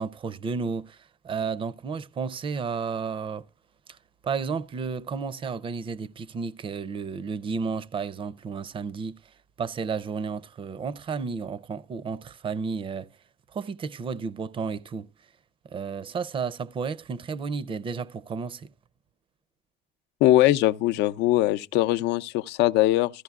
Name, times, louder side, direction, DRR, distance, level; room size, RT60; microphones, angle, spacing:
voice 1, 0.0-3.4 4.2-9.2 9.6-13.1 13.5-15.1 15.7-18.7, right 5 dB, 30° right, 0.5 m, -32 dB
voice 2, 20.2-23.1, left 15 dB, 80° left, 0.5 m, -21 dB
14.5 x 14.0 x 2.3 m
cardioid pair, 135°, 17 cm